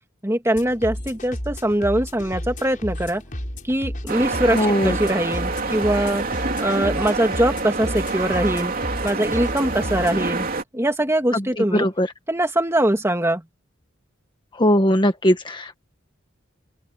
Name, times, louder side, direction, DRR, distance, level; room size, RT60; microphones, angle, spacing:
voice 1, 0.2-3.2 3.7-6.2 6.6-8.7 9.0-10.5 10.7-11.9 12.3-13.4, right 1 dB, 15° right, 2.6 m, -22 dB
sound 1, 0.5-10.2, equal, 40° left, 6.9 m, -33 dB
sound 2, 4.1-10.6, right 3 dB, 45° right, 3.4 m, -27 dB
voice 2, 4.5-5.0 11.3-11.4 11.7-12.1 14.6-15.8, equal, 25° left, 1.4 m, -19 dB
open air
head